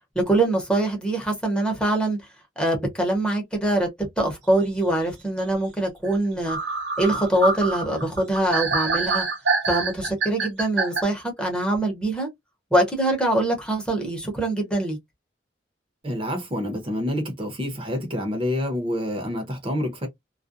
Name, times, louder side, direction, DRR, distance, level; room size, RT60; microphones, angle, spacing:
voice 1, 0.1-2.2 2.6-6.6 7.0-9.3 9.7-12.3 12.7-15.0, right 1 dB, 5° left, 0.8 m, -23 dB
sound 1, 6.1-6.2 6.5-11.0, right 4 dB, 85° right, 0.9 m, -25 dB
voice 2, 16.0-20.1, left 1 dB, 30° right, 0.8 m, -27 dB
2.3 x 2.1 x 2.6 m
head